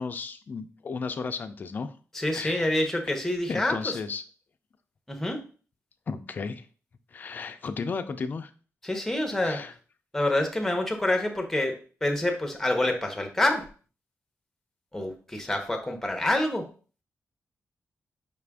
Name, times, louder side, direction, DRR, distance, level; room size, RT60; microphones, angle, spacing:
voice 1, 0.0-1.9 2.3-2.7 3.1-3.2 3.5-4.2 6.1-6.6 7.1-8.5 9.4-9.7, left 4 dB, 35° left, 8 dB, 0.3 m, -34 dB
voice 2, 2.1-4.0 5.1-5.4 8.8-9.6 10.1-13.7 14.9-16.7, left 1 dB, 5° left, 4 dB, 0.7 m, -27 dB
5.2 x 2.5 x 3.4 m, 0.39 s
wide cardioid pair, 170°, 5 cm